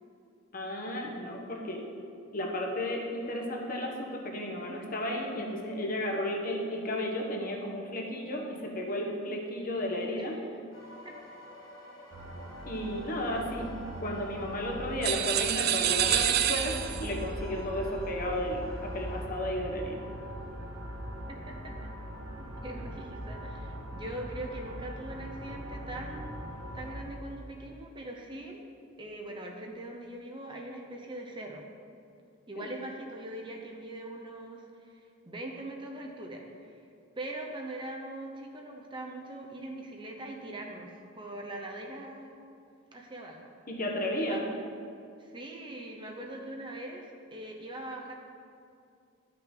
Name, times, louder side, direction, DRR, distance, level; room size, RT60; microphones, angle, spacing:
voice 1, 0.5-1.8 2.3-10.4 12.7-13.7 14.0-20.0 32.5-32.7 43.7-44.4, left 1 dB, 45° left, 0 dB, 1.0 m, -33 dB
voice 2, 9.1-9.4 10.1-10.3 11.0-11.1 21.3-21.9 22.6-28.6 29.0-31.6 32.5-36.8 37.2-42.4 42.9-43.5 44.2-44.6 45.2-48.1, right 1 dB, 25° right, 1 dB, 0.7 m, -42 dB
sound 1, 10.7-19.2, equal, 70° left, 1.7 m, -50 dB
sound 2, 12.1-27.0, right 1 dB, 70° right, 1.0 m, -41 dB
sound 3, 15.0-17.2, right 11 dB, 50° right, 0.3 m, -27 dB
10.5 x 5.8 x 3.8 m, 2.4 s
head